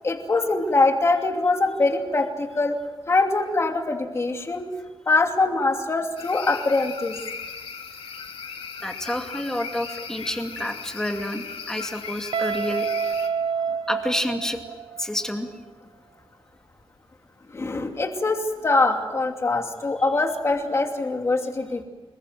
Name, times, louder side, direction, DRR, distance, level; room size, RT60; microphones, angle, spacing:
voice 1, 0.0-2.8 3.1-4.7 5.1-7.1 17.5-21.8, left 3 dB, 30° left, 3 dB, 2.7 m, -23 dB
sound 1, 6.2-13.3, left 6 dB, 85° left, 2.5 m, -37 dB
voice 2, 8.8-12.9 13.9-14.6 15.0-15.5, left 1 dB, 5° left, 4 dB, 2.4 m, -29 dB
Guitar, 12.3-15.2, right 6 dB, 70° right, 0.7 m, -28 dB
26.5 x 22.0 x 7.7 m, 1.2 s
wide cardioid pair, 170°, 9 cm